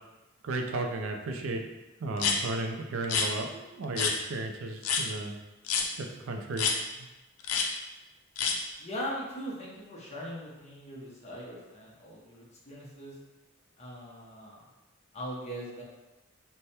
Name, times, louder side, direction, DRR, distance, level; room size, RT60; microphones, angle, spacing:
voice 1, 0.4-1.7 2.0-5.4 6.0-6.7 7.0-7.1, right 2 dB, 65° right, 3 dB, 0.4 m, -34 dB
sound 1, 2.2-2.4 3.0-3.3 4.0-4.1 4.8-5.0 5.7-5.9 6.6-6.8 7.4-7.7 8.4-8.6, left 6 dB, 85° left, 0.5 m, -27 dB
voice 2, 8.8-13.1 13.8-14.6 15.1-15.8, equal, 30° left, -5 dB, 0.9 m, -40 dB
3.4 x 2.1 x 4.2 m, 1.1 s
head